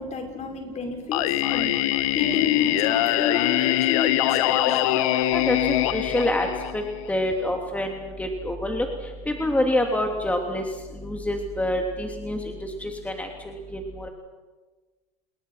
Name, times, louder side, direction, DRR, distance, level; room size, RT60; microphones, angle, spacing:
voice 1, 0.0-5.1, left 6 dB, 40° left, 3 dB, 6.2 m, -30 dB
Singing, 1.1-7.1, left 14 dB, 75° left, 1.2 m, -23 dB
voice 2, 5.9-6.5 6.7-6.8 7.1-8.9 9.3-10.6 11.0-14.1, left 1 dB, 10° left, 2 dB, 3.2 m, -26 dB
29.5 x 21.5 x 5.9 m, 1.3 s
hypercardioid pair, 85°, 17 cm